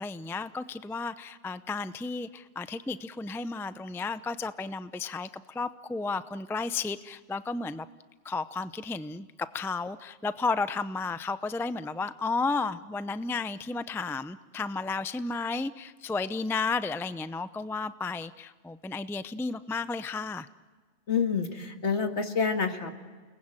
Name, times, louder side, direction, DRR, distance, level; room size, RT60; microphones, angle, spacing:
voice 1, 0.0-7.9 8.2-20.5, left 4 dB, 5° left, 13 dB, 0.4 m, -33 dB
voice 2, 21.1-22.9, left 5 dB, 70° left, 6 dB, 2.2 m, -28 dB
29.5 x 20.0 x 9.0 m, 1.5 s
omnidirectional pair, 1.2 m